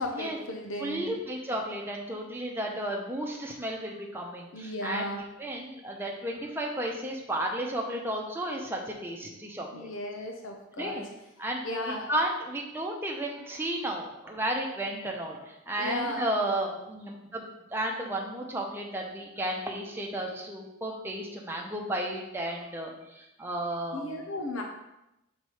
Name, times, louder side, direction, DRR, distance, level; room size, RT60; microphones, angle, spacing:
voice 1, 0.0-1.2 4.5-5.2 9.7-11.1 11.6-12.1 15.8-16.2 23.9-24.6, left 1 dB, 75° left, 2 dB, 0.7 m, -35 dB
voice 2, 0.8-5.0 5.4-9.9 10.8-11.0 11.4-17.4 17.7-24.2, right 1 dB, 10° right, -1 dB, 0.8 m, -33 dB
6.1 x 4.1 x 4.9 m, 0.91 s
head